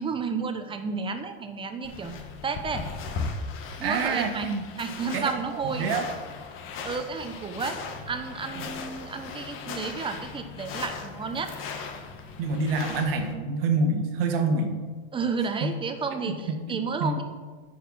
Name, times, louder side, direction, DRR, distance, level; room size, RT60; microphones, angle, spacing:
voice 1, 0.0-2.8 3.8-5.9 6.8-7.8 8.1-11.5 15.1-17.2, right 5 dB, 15° right, 7 dB, 1.0 m, -32 dB
sound 1, 1.8-13.3, left 5 dB, 40° left, 1.3 m, -38 dB
voice 2, 3.8-4.6 5.1-6.0 12.4-14.8 15.6-15.7 16.2-17.2, right 3 dB, 65° right, 5 dB, 1.7 m, -27 dB
9.2 x 5.7 x 5.6 m, 1.4 s
hypercardioid pair, 120°, 31 cm